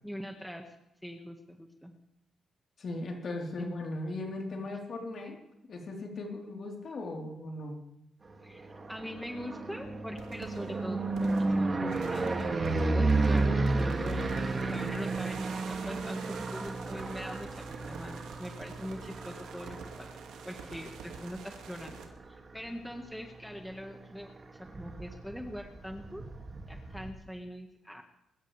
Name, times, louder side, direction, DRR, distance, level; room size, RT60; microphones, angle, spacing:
voice 1, 0.0-0.6 1.0-2.0 3.6-3.7 8.4-20.1 20.4-26.2 26.7-28.0, equal, ahead, 3 dB, 1.8 m, -42 dB
voice 2, 2.8-5.4 5.7-7.8, left 2 dB, 55° left, 0 dB, 4.0 m, -38 dB
sound 1, 8.5-22.5 22.9-23.4 23.6-23.7 24.0-24.1 24.3-27.1, right 3 dB, 35° right, 2.5 m, -32 dB
sound 2, 10.2-22.1, right 6 dB, 90° right, 2.3 m, -48 dB
23.5 x 13.0 x 3.5 m, 0.82 s
cardioid pair, 80°, 0 cm